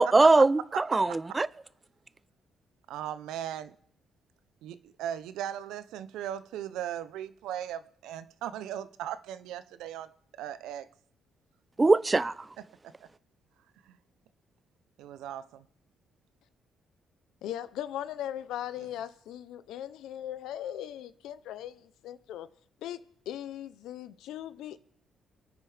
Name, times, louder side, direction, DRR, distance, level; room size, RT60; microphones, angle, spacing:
voice 1, 0.0-1.5 11.8-12.3, right 3 dB, 20° right, 0.5 m, -21 dB
voice 2, 2.9-3.7 4.6-10.1 10.4-10.9 13.9-14.0 15.0-15.7, right 11 dB, 90° right, 0.6 m, -38 dB
voice 3, 17.4-22.5 22.8-24.8, left 11 dB, 85° left, 0.6 m, -39 dB
26.5 x 9.5 x 3.4 m
cardioid pair, 90°, 0 cm